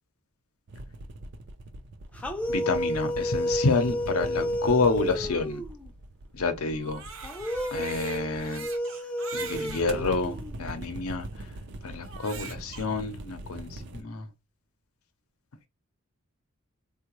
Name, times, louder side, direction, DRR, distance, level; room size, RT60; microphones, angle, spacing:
sound 1, 0.7-8.8 9.4-14.0, right 1 dB, 55° right, 0.4 m, -42 dB
sound 2, 2.1-5.9 7.2-10.8, equal, 5° left, 0.4 m, -32 dB
voice 1, 2.5-5.6 6.3-7.0 7.7-8.7 9.3-11.3 11.8-14.3, left 3 dB, 90° left, 0.6 m, -28 dB
Crying sobbing, 6.7-9.9 10.6-10.7 12.0-12.8, right 6 dB, 70° right, 0.8 m, -42 dB
3.5 x 2.2 x 2.9 m
head